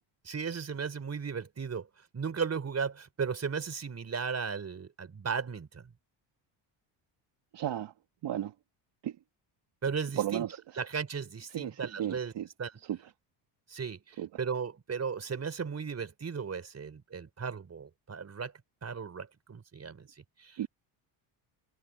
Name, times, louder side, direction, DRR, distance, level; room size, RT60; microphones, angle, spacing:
voice 1, 0.2-5.9 9.8-10.4 10.8-12.3 12.6-12.7 13.7-18.5 18.8-20.6, right 6 dB, 30° right, 5.1 m, -36 dB
voice 2, 7.5-7.9 8.2-8.5 9.0-9.2 10.2-10.8 11.5-12.5 12.8-13.0 14.2-14.3 20.6-20.7, right 11 dB, 60° right, 2.2 m, -34 dB
cardioid pair, 105°, 48 cm